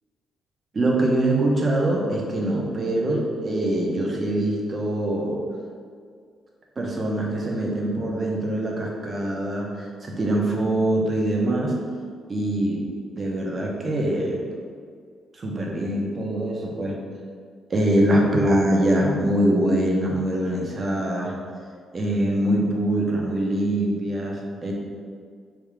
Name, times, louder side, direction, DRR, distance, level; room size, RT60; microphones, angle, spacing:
voice 1, 0.7-5.4 6.8-11.8 12.3-12.8 13.1-14.5 15.3-17.0 17.7-21.3 21.9-24.7, right 1 dB, 30° right, -1 dB, 0.7 m, -23 dB
3.6 x 2.7 x 4.7 m, 2.1 s
cardioid pair, 135°, 0 cm